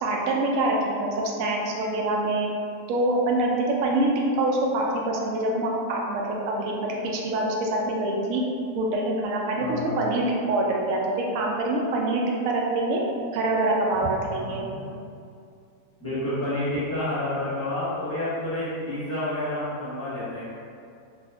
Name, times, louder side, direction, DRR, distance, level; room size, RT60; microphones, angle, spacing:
voice 1, 0.0-2.5 2.9-4.1 4.4-8.4 8.7-13.0 13.3-14.6, right 2 dB, 70° right, -1 dB, 0.8 m, -25 dB
voice 2, 9.6-10.0 14.3-15.0 16.0-20.5, left 1 dB, 10° left, -12 dB, 0.8 m, -29 dB
2.7 x 2.4 x 3.4 m, 2.4 s
omnidirectional pair, 1.8 m